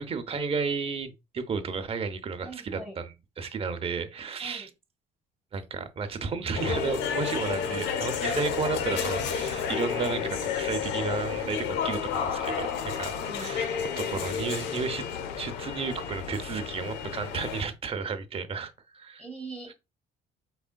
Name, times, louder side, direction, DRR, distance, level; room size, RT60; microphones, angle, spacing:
voice 1, 0.0-4.7 5.5-12.7 12.9-15.0 15.4-19.3 19.7-19.8, right 5 dB, 35° right, 0.7 m, -33 dB
voice 2, 2.4-2.9 4.4-4.7 13.1-13.5 19.2-19.7, right 3 dB, 5° left, 1.7 m, -42 dB
sound 1, 6.5-17.6, left 7 dB, 90° left, 0.7 m, -31 dB
4.8 x 3.6 x 2.2 m
cardioid pair, 110°, 17 cm